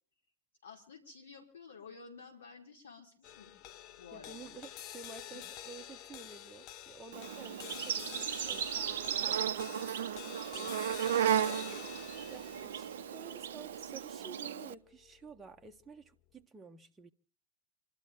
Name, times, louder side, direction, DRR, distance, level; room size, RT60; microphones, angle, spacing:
voice 1, 0.6-3.5 4.0-4.5 5.3-5.4, left 5 dB, 65° left, 4.7 m, -52 dB
sound 1, 3.2-15.7, left 11 dB, 40° left, 0.8 m, -49 dB
voice 2, 4.1-11.8 12.3-17.1, right 5 dB, 15° right, 1.1 m, -52 dB
Insect, 7.1-14.7, right 9 dB, 60° right, 0.7 m, -35 dB
27.5 x 13.0 x 3.8 m
figure-of-eight pair, 90°, 0 cm